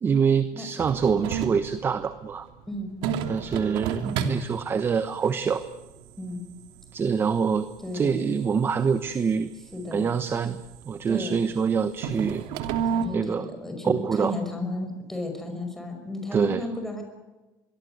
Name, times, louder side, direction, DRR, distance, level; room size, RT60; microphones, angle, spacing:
voice 1, 0.0-2.5 3.3-5.6 6.9-7.7 7.9-9.5 9.9-10.6 10.9-12.4 13.1-13.5 13.8-14.3 16.3-16.7, right 6 dB, 25° right, 11 dB, 1.1 m, -25 dB
sound 1, 0.8-13.1, right 7 dB, 75° right, 3.0 m, -35 dB
voice 2, 7.8-8.4 9.7-10.1 11.1-11.4 12.9-17.0, left 1 dB, 5° left, 3 dB, 5.7 m, -33 dB
25.0 x 23.0 x 8.0 m, 1.1 s
cardioid pair, 140°, 9 cm